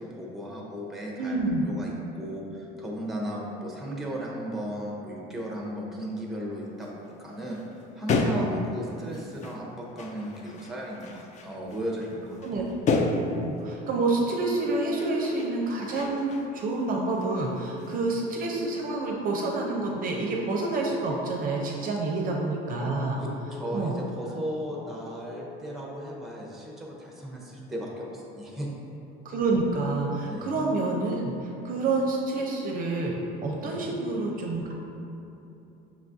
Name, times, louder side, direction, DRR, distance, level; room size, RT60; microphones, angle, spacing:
voice 1, 0.0-1.4 1.6-7.6 7.9-12.6 23.2-28.7 30.2-30.5 33.6-33.9, equal, ahead, -2 dB, 0.6 m, -36 dB
voice 2, 1.2-1.6 12.4-12.6 13.4-23.2 23.7-23.9 29.2-34.7, right 2 dB, 45° right, -1 dB, 0.5 m, -28 dB
sound 1, 6.8-6.9 7.3-9.6 10.0-13.6 14.5-14.7 15.0-16.9 17.1-18.1, left 3 dB, 35° left, 0.4 m, -32 dB
sound 2, 12.1-12.5 12.8-13.2 13.5-13.9 14.6-15.0 15.3-15.7 16.0-16.4 17.1-17.5 17.8-18.2 18.5-18.9 19.6-20.0 20.3-20.7 21.0-21.4 22.1-22.5 22.8-23.2 23.5-23.9 24.6-25.0 25.3-25.7 26.0-26.4, left 5 dB, 70° left, 1.2 m, -46 dB
5.8 x 2.3 x 2.6 m, 2.9 s
cardioid pair, 110°, 20 cm